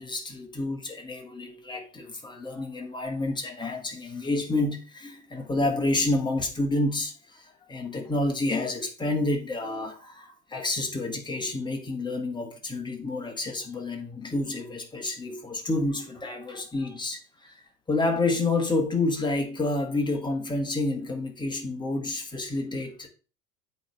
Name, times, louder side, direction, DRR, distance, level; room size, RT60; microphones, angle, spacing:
voice 1, 0.0-17.6 17.9-23.1, left 2 dB, 10° left, 1.5 m, -29 dB
8.0 x 3.4 x 5.2 m
figure-of-eight pair, 85°, 48 cm